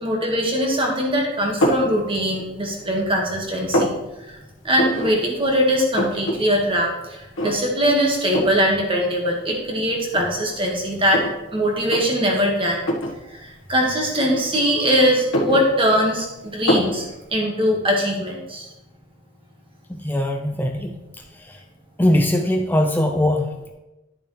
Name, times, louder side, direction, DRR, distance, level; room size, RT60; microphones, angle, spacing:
voice 1, 0.0-3.9 4.3-4.4 4.6-11.2 11.5-12.8 13.3-17.1 17.3-18.7, equal, 25° right, 0 dB, 1.7 m, -21 dB
sound 1, 1.6-1.9 2.5-3.1 3.4-4.0 4.7-5.1 5.4-5.5 5.7-6.4 6.7-6.8 7.3-7.8 8.3-8.6 9.4-9.5 10.1-11.4 11.8-12.0 12.8-13.2 14.1-14.8 15.1-16.2 16.7-17.0, equal, 90° left, 1.5 m, -23 dB
voice 2, 19.9-21.6 22.0-23.7, left 1 dB, 10° left, 4 dB, 0.5 m, -21 dB
11.0 x 6.9 x 3.3 m, 1.0 s
head